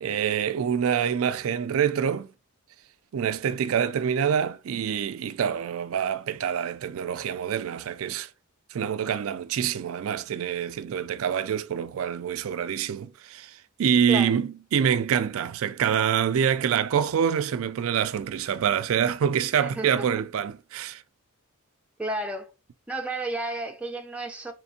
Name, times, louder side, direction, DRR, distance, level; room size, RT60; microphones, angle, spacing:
voice 1, 0.0-2.3 3.1-8.3 8.7-21.0, right 8 dB, 70° right, 0.3 m, -26 dB
voice 2, 19.6-20.1 22.0-22.5 22.9-24.5, right 2 dB, 5° right, 0.5 m, -32 dB
4.3 x 3.1 x 2.6 m
head